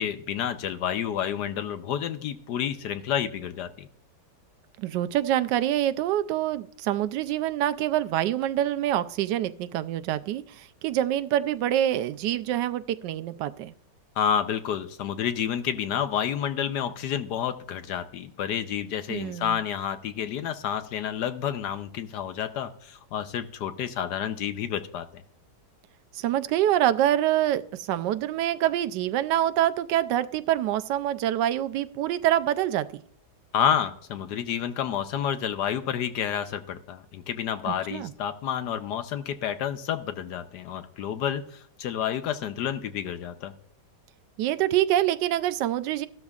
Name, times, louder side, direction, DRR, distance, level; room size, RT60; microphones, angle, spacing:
voice 1, 0.0-3.9 14.2-25.2 33.5-43.5, left 9 dB, 75° left, 10 dB, 1.2 m, -29 dB
voice 2, 4.8-13.7 19.1-19.5 26.1-32.9 37.9-38.1 44.4-46.1, right 12 dB, 80° right, 12 dB, 1.2 m, -26 dB
14.0 x 12.5 x 2.4 m, 0.64 s
omnidirectional pair, 1.9 m